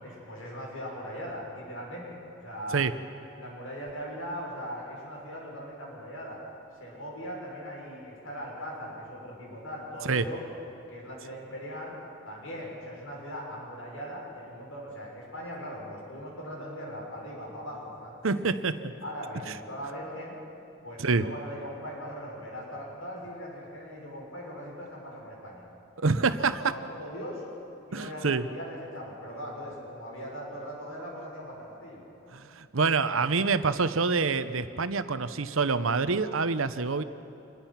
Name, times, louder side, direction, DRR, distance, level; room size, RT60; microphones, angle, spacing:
voice 1, 0.0-2.9 3.4-6.4 6.8-10.4 10.9-12.0 12.2-18.5 19.0-20.4 20.8-25.7 26.1-26.2 26.7-27.4 27.9-32.0, equal, 90° left, -3 dB, 6.6 m, -40 dB
voice 2, 18.2-18.9 19.5-19.6 21.0-21.2 26.0-26.6 27.9-28.4 32.3-37.0, right 4 dB, 80° right, 12 dB, 0.8 m, -26 dB
26.5 x 21.0 x 5.9 m, 2.9 s
head